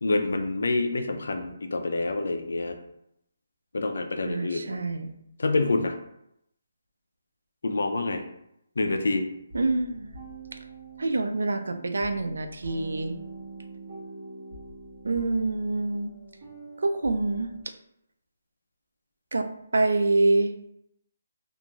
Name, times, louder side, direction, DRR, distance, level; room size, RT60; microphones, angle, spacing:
voice 1, 0.0-2.8 3.7-4.8 5.4-5.9 7.6-8.2 8.8-9.3, left 2 dB, 75° left, 6 dB, 0.4 m, -27 dB
voice 2, 4.2-5.1 9.5-10.1 11.0-13.1 15.0-16.1 16.8-17.5 19.3-19.5 19.7-20.5, right 2 dB, 80° right, 7 dB, 0.3 m, -26 dB
sound 1, 9.5-17.6, right 3 dB, 35° right, 0.9 m, -44 dB
2.5 x 2.2 x 2.9 m, 0.78 s
hypercardioid pair, 175°, 0 cm